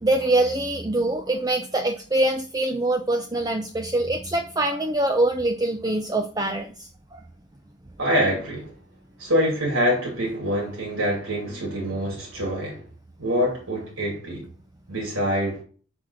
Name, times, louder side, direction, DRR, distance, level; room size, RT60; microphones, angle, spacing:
voice 1, 0.0-6.7 7.1-7.2, right 2 dB, 20° right, 0.5 m, -24 dB
voice 2, 8.0-8.7 9.2-12.8 13.2-14.4 14.9-15.6, equal, 85° right, 2.7 m, -25 dB
6.3 x 4.3 x 6.1 m
head